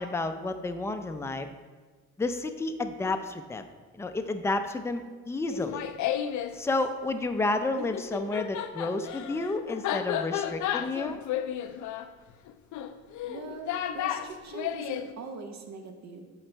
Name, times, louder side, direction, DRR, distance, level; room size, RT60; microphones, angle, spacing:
voice 1, 0.0-1.5 2.2-3.6 3.9-5.9 6.5-11.2, left 2 dB, 10° left, 7 dB, 0.4 m, -31 dB
Laughter, 5.5-6.5 7.8-15.1, left 10 dB, 70° left, 0.5 m, -33 dB
voice 2, 13.3-16.3, right 3 dB, 60° right, 5 dB, 1.0 m, -41 dB
7.7 x 3.9 x 4.5 m, 1.4 s
cardioid pair, 90°, 30 cm